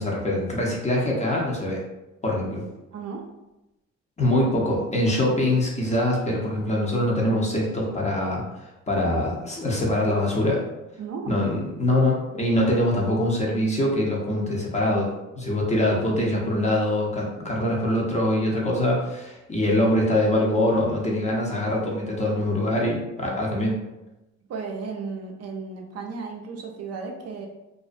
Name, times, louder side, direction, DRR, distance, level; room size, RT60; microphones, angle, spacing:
voice 1, 0.0-1.8 2.2-2.6 4.2-10.6 11.3-23.7, left 1 dB, 25° left, -2 dB, 0.6 m, -24 dB
voice 2, 2.9-3.2 11.0-11.4 23.2-23.4 24.5-27.5, right 4 dB, 55° right, 1 dB, 0.4 m, -34 dB
2.4 x 2.1 x 2.5 m, 0.96 s
cardioid pair, 90°, 30 cm